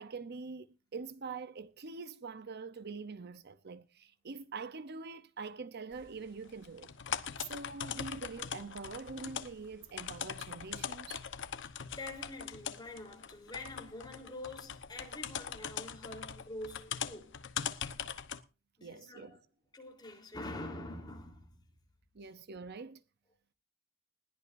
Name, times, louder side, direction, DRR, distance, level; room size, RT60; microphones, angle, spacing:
voice 1, 0.0-6.9 7.4-11.2 18.8-19.4 22.1-23.0, right 4 dB, 50° right, 0.7 m, -44 dB
sound 1, 5.9-18.4, left 7 dB, 60° left, 1.1 m, -41 dB
voice 2, 11.5-17.4 18.8-19.4 19.7-21.7, left 2 dB, 20° left, 3.7 m, -46 dB
20.5 x 16.5 x 2.6 m
head